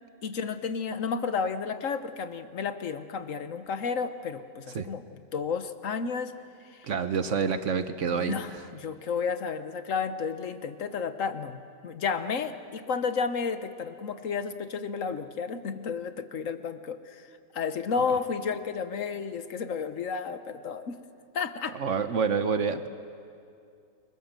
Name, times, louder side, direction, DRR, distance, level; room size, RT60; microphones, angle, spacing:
voice 1, 0.2-6.3 6.7-6.9 8.1-17.3 17.5-21.0 21.3-21.8, left 5 dB, 80° left, 10 dB, 1.5 m, -32 dB
voice 2, 6.9-8.4 21.7-22.9, right 6 dB, 70° right, 10 dB, 1.3 m, -27 dB
29.5 x 22.0 x 7.5 m, 2.4 s
omnidirectional pair, 1.3 m